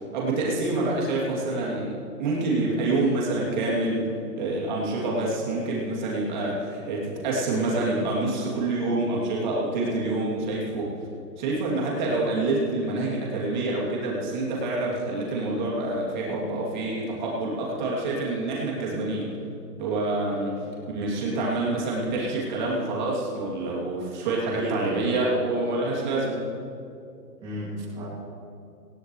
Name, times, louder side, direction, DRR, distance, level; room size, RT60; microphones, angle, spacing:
voice 1, 0.1-1.9 2.2-10.9 11.4-19.3 19.8-20.6 20.9-26.4, right 2 dB, 30° right, -4 dB, 3.1 m, -27 dB
voice 2, 24.5-25.1 27.4-28.0, right 1 dB, 10° right, -10 dB, 2.6 m, -33 dB
19.5 x 17.5 x 3.3 m, 2.6 s
hypercardioid pair, 170°, 50 cm